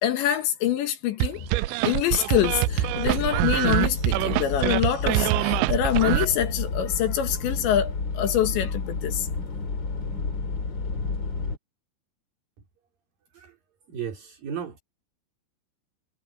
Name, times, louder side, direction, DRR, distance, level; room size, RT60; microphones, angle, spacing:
voice 1, 0.0-1.5 1.8-9.3, left 11 dB, 70° left, 3.8 m, -25 dB
sound 1, 1.2-6.3, right 20 dB, 85° right, 2.7 m, -24 dB
sound 2, 2.3-11.6, left 4 dB, 35° left, 2.2 m, -31 dB
voice 2, 13.9-14.8, right 8 dB, 50° right, 5.8 m, -34 dB
omnidirectional pair, 5.6 m